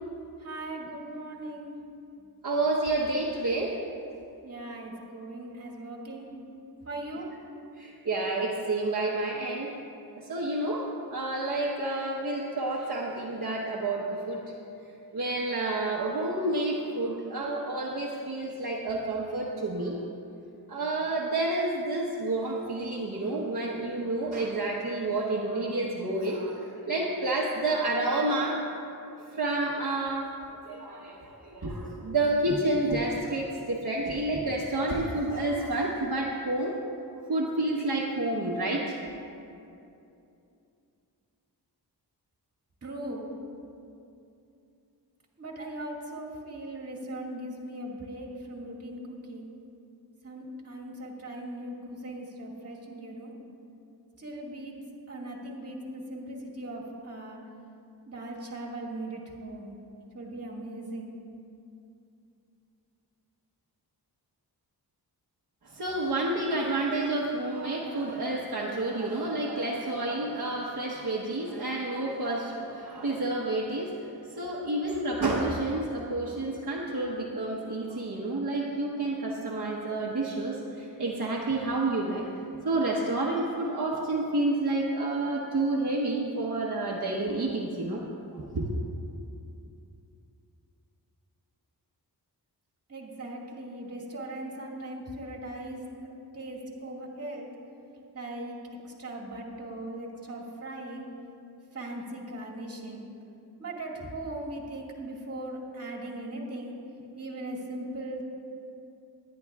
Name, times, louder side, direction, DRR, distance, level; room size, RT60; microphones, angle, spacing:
voice 1, 0.4-1.8 4.4-6.3 6.9-7.3 42.8-43.3 45.4-49.5 50.2-53.3 54.2-54.8 55.1-57.4 58.1-59.7 60.1-61.1 92.9-96.1 96.3-97.5 98.1-98.6 98.8-101.1 101.7-103.0 103.6-106.8 107.2-108.2, right 1 dB, 40° right, -2 dB, 2.0 m, -39 dB
voice 2, 2.4-3.8 7.8-9.7 10.1-14.4 15.1-20.0 20.7-28.7 29.4-30.3 30.6-36.7 37.3-38.9 65.7-82.2 82.6-88.0 88.3-88.7, right 2 dB, 55° right, -4 dB, 1.2 m, -29 dB
21.0 x 10.5 x 2.4 m, 2.6 s
wide cardioid pair, 135°, 40 cm